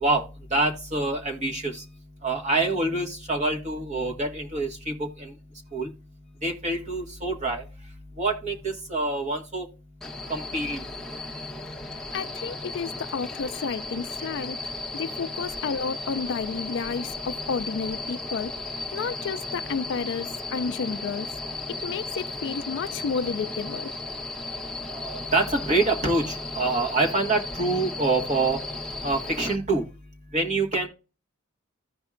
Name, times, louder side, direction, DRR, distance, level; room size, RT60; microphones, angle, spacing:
voice 1, 0.0-1.8 2.2-5.3 5.7-5.9 6.4-7.6 8.2-9.7 10.3-10.8 24.9-28.6 29.0-29.8 30.3-30.9, right 2 dB, 30° right, 1.8 m, -26 dB
sound 1, 10.0-29.6, left 2 dB, ahead, 0.9 m, -35 dB
voice 2, 12.1-18.5 18.9-21.3 21.7-23.9, left 5 dB, 55° left, 0.3 m, -31 dB
15.5 x 5.2 x 2.5 m
head